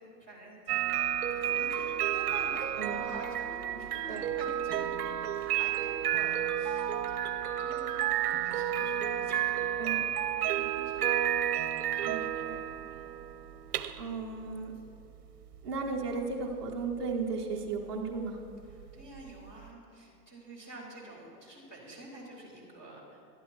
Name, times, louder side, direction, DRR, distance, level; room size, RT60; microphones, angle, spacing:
voice 1, 0.0-4.8 5.4-9.3 10.4-10.6 10.9-11.4 12.8-13.2 18.9-23.2, right 1 dB, 15° left, -6 dB, 2.7 m, -48 dB
sound 1, 0.7-19.7, right 10 dB, 70° right, 0.7 m, -32 dB
voice 2, 10.5-10.9 12.0-12.6 14.0-14.7 15.6-18.4, right 4 dB, 15° right, -4 dB, 0.6 m, -36 dB
11.5 x 11.5 x 4.5 m, 2.5 s
hypercardioid pair, 180°, 48 cm